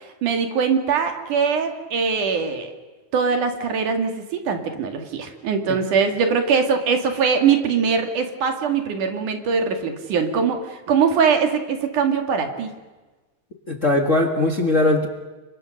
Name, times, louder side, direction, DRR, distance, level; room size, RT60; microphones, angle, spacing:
voice 1, 0.2-2.7 3.1-12.7, right 6 dB, 75° right, 5 dB, 3.8 m, -22 dB
voice 2, 13.7-15.1, left 2 dB, 30° left, 4 dB, 1.5 m, -19 dB
30.0 x 24.5 x 6.7 m, 1.2 s
omnidirectional pair, 3.6 m